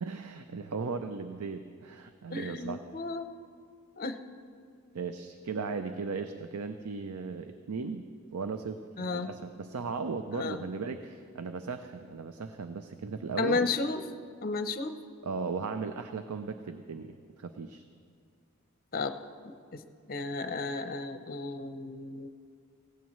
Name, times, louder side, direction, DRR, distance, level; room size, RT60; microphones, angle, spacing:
voice 1, 0.0-2.8 4.9-8.1 8.3-13.7 15.2-17.8, right 4 dB, 85° right, 8 dB, 0.5 m, -37 dB
voice 2, 2.3-3.3 4.0-4.2 9.0-9.3 10.3-10.6 13.4-14.0 14.4-14.9 18.9-19.1 19.4-19.8 20.1-22.3, left 3 dB, 40° left, 8 dB, 0.7 m, -33 dB
18.0 x 16.5 x 3.1 m, 2.3 s
head